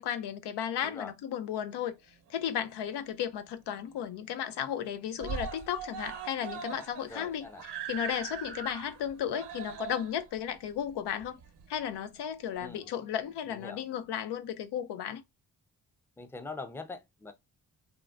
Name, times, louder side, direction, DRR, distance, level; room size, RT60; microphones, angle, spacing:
voice 1, 0.0-1.9 2.3-11.4 11.7-15.2, left 9 dB, 85° left, 0.5 m, -34 dB
voice 2, 0.8-1.1 7.1-7.6 12.6-12.9 13.5-13.8 16.2-17.3, left 4 dB, 5° left, 0.5 m, -43 dB
Screaming, 2.3-3.2 3.5-3.6 4.0-4.1 4.4-4.8 5.2-12.0 12.8-12.9, right 7 dB, 80° right, 0.8 m, -41 dB
3.6 x 2.1 x 2.3 m
cardioid pair, 70°, 39 cm